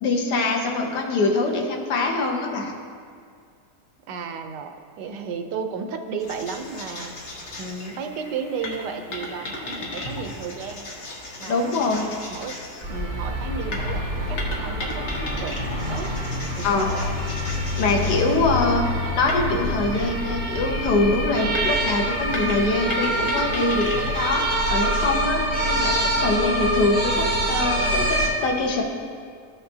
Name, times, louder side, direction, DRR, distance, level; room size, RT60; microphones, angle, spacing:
voice 1, 0.0-2.7 11.5-12.1 16.6-16.9 17.8-18.8 19.1-24.4 24.7-25.4 25.6-28.8, left 3 dB, 85° left, 1 dB, 1.6 m, -23 dB
voice 2, 0.6-1.0 4.1-7.1 7.6-10.9 11.4-11.8 12.3-12.6 12.9-15.6 15.9-16.2 16.5-17.2 18.0-18.2, right 5 dB, 85° right, 6 dB, 1.3 m, -33 dB
sound 1, 6.2-25.2, left 2 dB, 45° left, 1.2 m, -36 dB
sound 2, 12.8-28.3, equal, 35° right, 1.8 m, -26 dB
14.0 x 5.7 x 2.7 m, 2.2 s
omnidirectional pair, 1.8 m